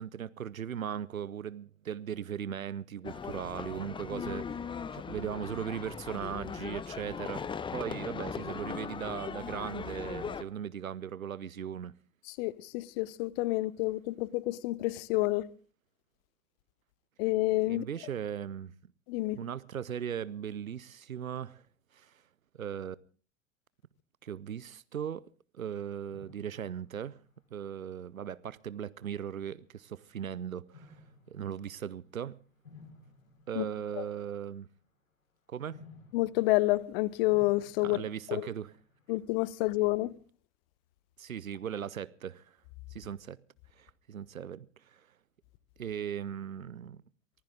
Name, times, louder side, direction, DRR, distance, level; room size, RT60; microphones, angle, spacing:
voice 1, 0.0-4.6 4.9-7.4 7.7-11.9 17.7-18.7 19.3-21.6 21.9-22.1 22.6-23.0 24.2-25.2 25.5-27.2 27.5-31.0 31.3-32.3 33.5-34.7 35.5-35.8 37.8-38.7 41.2-42.4 42.9-43.4 43.8-45.0 45.8-47.0, right 8 dB, 80° right, 0.8 m, -38 dB
sound 1, 3.0-10.4, left 6 dB, 10° left, 0.7 m, -39 dB
voice 2, 12.4-15.4 17.2-17.8 19.1-19.4 33.5-33.6 34.0-34.1 36.1-38.0 38.3-38.5 39.1-40.1, left 19 dB, 45° left, 0.9 m, -29 dB
sound 2, 26.1-28.3 29.0-29.4 30.7-34.9 35.7-40.1, left 3 dB, 75° left, 3.5 m, -58 dB
23.5 x 15.0 x 3.7 m
figure-of-eight pair, 85°, 41 cm